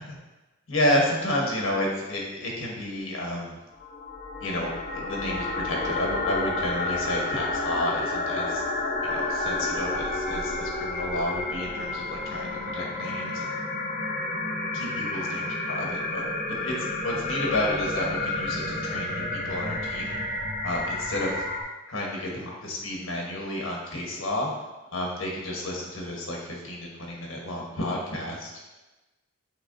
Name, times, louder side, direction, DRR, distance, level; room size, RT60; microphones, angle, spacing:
voice 1, 0.7-3.6 4.4-8.6 9.0-13.5 14.7-20.2 20.6-21.3 21.9-24.5 24.9-28.5, left 1 dB, 90° left, -2 dB, 1.1 m, -31 dB
sound 1, 3.8-21.6, left 2 dB, 45° left, 0.6 m, -30 dB
6.7 x 3.0 x 2.6 m, 1.1 s
head